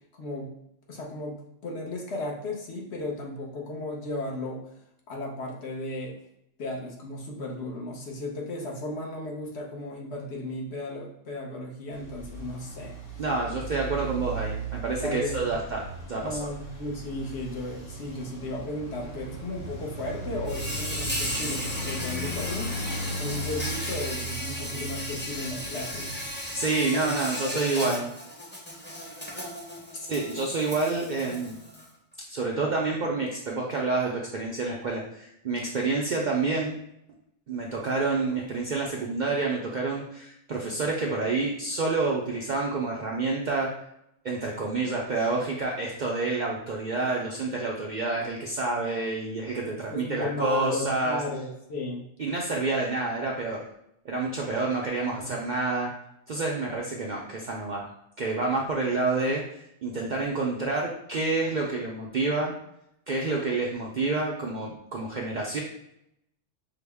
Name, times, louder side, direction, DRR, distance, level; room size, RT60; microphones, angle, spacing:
voice 1, 0.1-0.5 0.9-1.4 1.6-4.6 5.1-6.1 6.6-13.0 14.2-14.3 15.0-15.4 16.2-22.7 23.2-26.2 26.9-27.1 27.4-28.1 29.9-30.0 49.9-52.1 55.1-55.3, left 2 dB, 60° left, -1 dB, 1.0 m, -35 dB
Traffic noise roadway noise, 11.9-27.4, right 2 dB, 80° left, 1.4 m, -37 dB
voice 2, 13.2-15.8 16.1-16.5 26.5-28.0 30.1-31.6 32.3-36.8 37.5-43.7 44.2-51.2 52.2-53.6 54.0-55.9 56.3-57.9 58.2-59.4 59.8-62.5 63.1-65.6, right 3 dB, 60° right, -2 dB, 0.5 m, -28 dB
Insect, 20.4-31.9, equal, 10° left, 0.6 m, -35 dB
5.6 x 2.0 x 3.4 m, 0.77 s
omnidirectional pair, 1.3 m